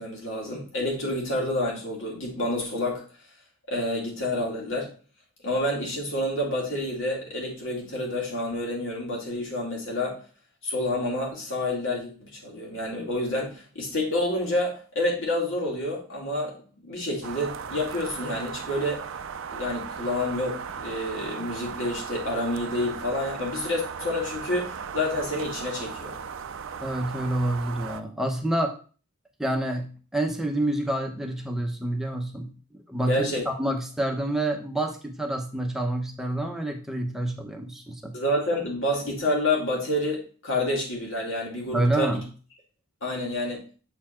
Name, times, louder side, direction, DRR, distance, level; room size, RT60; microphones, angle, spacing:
voice 1, 0.0-3.0 3.7-4.9 5.4-10.2 10.6-16.6 16.8-19.1 19.5-26.2 33.1-33.4 38.1-42.2 43.0-43.6, left 1 dB, 60° left, -2 dB, 2.5 m, -28 dB
sound 1, 17.2-28.0, right 6 dB, 60° right, 0.5 m, -37 dB
voice 2, 26.8-28.7 29.4-38.1 41.7-42.2, right 1 dB, ahead, 3 dB, 0.8 m, -28 dB
7.5 x 4.2 x 4.4 m, 0.39 s
head